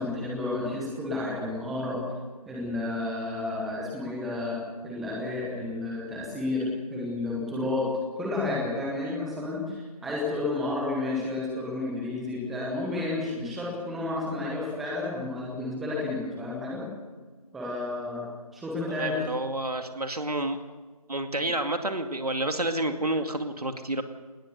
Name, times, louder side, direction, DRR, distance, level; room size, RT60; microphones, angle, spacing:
voice 1, 0.0-2.0 2.5-4.6 4.8-7.9 8.2-16.8 17.5-18.2 18.5-19.2, left 2 dB, ahead, -3 dB, 0.9 m, -31 dB
voice 2, 18.9-20.6 21.1-24.0, right 1 dB, 75° right, 6 dB, 2.3 m, -29 dB
20.0 x 19.5 x 6.8 m, 1.4 s
figure-of-eight pair, 165°, 20 cm